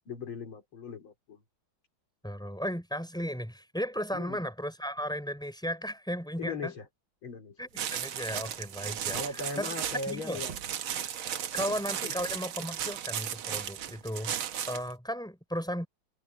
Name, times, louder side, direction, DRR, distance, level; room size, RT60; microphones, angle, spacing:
voice 1, 0.1-1.4 4.1-4.4 6.4-6.8 7.2-7.6 9.1-10.5 11.7-11.8 12.0-12.1, left 3 dB, 85° left, 4.3 m, -38 dB
voice 2, 2.2-6.7 7.6-9.7 10.1-10.4 11.5-14.3 14.7-15.9, equal, ahead, 3.9 m, -35 dB
sound 1, 7.8-14.9, right 9 dB, 90° right, 1.9 m, -35 dB
omnidirectional pair, 2.2 m